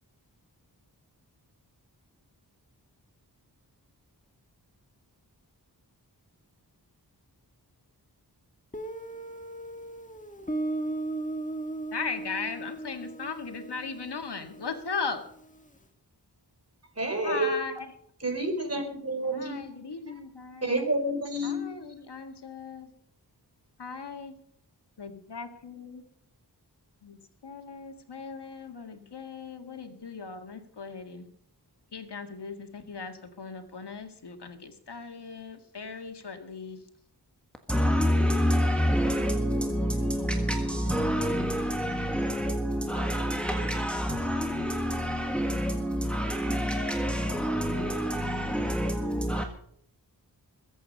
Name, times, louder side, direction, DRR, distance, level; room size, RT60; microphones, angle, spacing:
Guitar, 8.7-15.4, right 2 dB, 20° left, 1.6 m, -37 dB
voice 1, 11.9-15.2 17.2-17.9 19.3-20.7 21.4-22.9 23.8-24.3 25.0-26.0 27.0-27.2 27.4-31.3 31.9-36.8, left 5 dB, 80° left, 2.0 m, -38 dB
voice 2, 17.0-17.6 18.2-19.6 20.6-21.6, right 1 dB, 40° right, 4.3 m, -29 dB
voice 3, 37.7-49.4, equal, 5° left, 1.5 m, -27 dB
22.0 x 8.6 x 5.4 m
wide cardioid pair, 75°, 40 cm